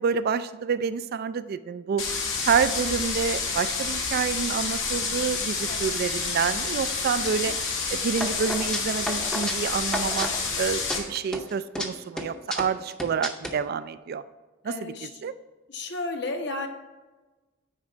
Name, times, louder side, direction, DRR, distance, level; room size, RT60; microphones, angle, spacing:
voice 1, 0.0-2.0 2.4-7.6 7.9-10.3 10.6-14.2 14.6-15.3, right 6 dB, 50° right, 14 dB, 0.3 m, -28 dB
sound 1, 2.0-11.0, left 4 dB, 90° left, 1.7 m, -29 dB
sound 2, 8.2-10.6 10.9-11.9 12.2-13.5, equal, 5° left, 0.6 m, -33 dB
voice 2, 14.7-15.1 15.7-16.7, left 2 dB, 60° left, 4 dB, 1.0 m, -33 dB
9.6 x 4.3 x 4.9 m, 1.2 s
head